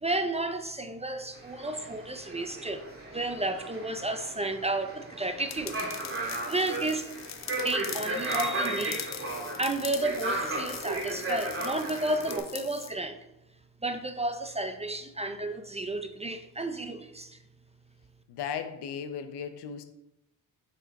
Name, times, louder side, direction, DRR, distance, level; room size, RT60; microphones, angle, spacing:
voice 1, 0.0-5.8 6.5-7.1 7.6-9.3 9.6-13.2 13.8-17.4, right 2 dB, 15° right, 7 dB, 0.5 m, -32 dB
sound 1, 1.3-12.4, right 2 dB, 35° right, 2.4 m, -35 dB
sound 2, 5.5-12.9, left 11 dB, 45° left, 0.4 m, -42 dB
voice 2, 18.3-19.8, left 7 dB, 80° left, 9 dB, 0.9 m, -36 dB
9.0 x 4.4 x 3.6 m, 0.87 s
cardioid pair, 115°, 40 cm